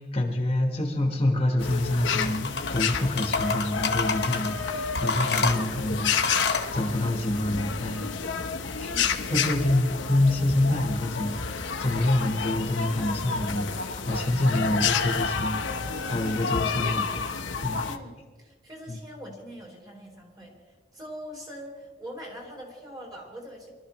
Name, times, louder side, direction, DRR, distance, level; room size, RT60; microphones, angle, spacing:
voice 1, 0.0-8.2 8.8-8.9 9.3-17.4 17.6-17.8 18.9-19.0, left 1 dB, 30° left, 2 dB, 1.3 m, -27 dB
sound 1, 1.6-18.0, left 5 dB, 90° left, 0.9 m, -30 dB
sound 2, 2.0-2.8 3.2-4.5 4.9-6.7, left 4 dB, 65° left, 1.2 m, -28 dB
voice 2, 8.9-9.6 17.8-18.1 18.4-20.6 20.9-23.7, equal, 20° right, -1 dB, 3.2 m, -42 dB
24.0 x 12.5 x 3.1 m, 1.4 s
head